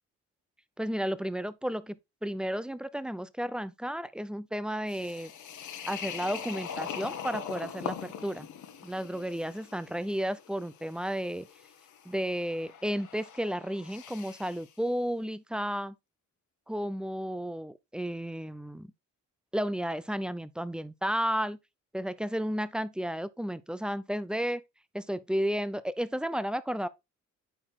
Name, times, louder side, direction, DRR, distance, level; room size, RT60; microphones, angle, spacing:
voice 1, 0.8-5.3 5.9-8.5 8.8-11.5 12.1-15.9 16.7-18.9 19.5-21.6 21.9-24.6 24.9-26.9, equal, 5° right, 0.5 m, -33 dB
sound 1, 4.9-14.7, left 8 dB, 75° left, 1.5 m, -42 dB
9.2 x 4.4 x 3.7 m
cardioid pair, 90°, 30 cm